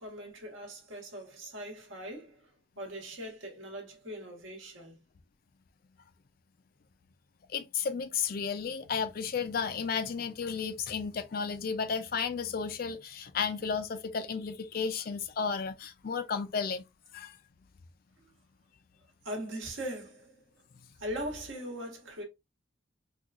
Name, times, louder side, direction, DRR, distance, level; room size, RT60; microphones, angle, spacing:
voice 1, 0.0-2.5 2.8-5.0 19.2-20.4 21.0-22.2, equal, 70° right, 1.3 m, -40 dB
voice 2, 7.5-16.8 17.1-17.4, left 6 dB, 45° left, 0.4 m, -33 dB
4.3 x 2.3 x 2.4 m
head